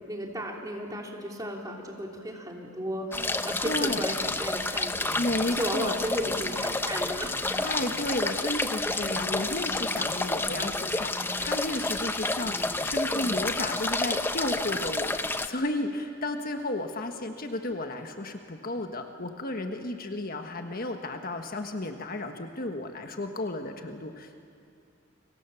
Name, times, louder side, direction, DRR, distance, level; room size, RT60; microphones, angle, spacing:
voice 1, 0.0-5.1 5.5-7.3, equal, 20° right, 0 dB, 3.1 m, -34 dB
sound 1, 3.1-15.5, left 2 dB, 10° left, 0.8 m, -30 dB
voice 2, 3.6-4.0 5.2-5.9 7.5-24.4, left 2 dB, 45° left, 5 dB, 1.5 m, -33 dB
30.0 x 24.5 x 7.1 m, 2.5 s
head